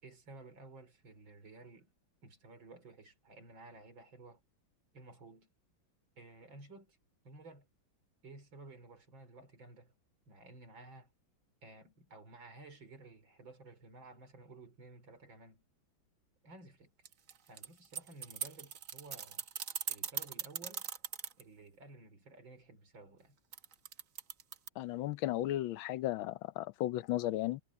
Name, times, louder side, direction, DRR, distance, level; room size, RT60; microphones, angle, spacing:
voice 1, 0.0-1.9 2.2-4.4 4.9-5.5 6.2-7.0 7.2-7.7 8.2-9.9 10.3-11.1 11.6-15.6 16.4-16.9 17.5-19.4 19.9-20.9 21.4-23.4, right 2 dB, 70° right, 4.8 m, -54 dB
sound 1, 17.1-21.4 23.5-24.7, right 8 dB, 50° right, 1.1 m, -40 dB
voice 2, 24.8-27.6, left 14 dB, 80° left, 1.5 m, -35 dB
omnidirectional pair, 2.2 m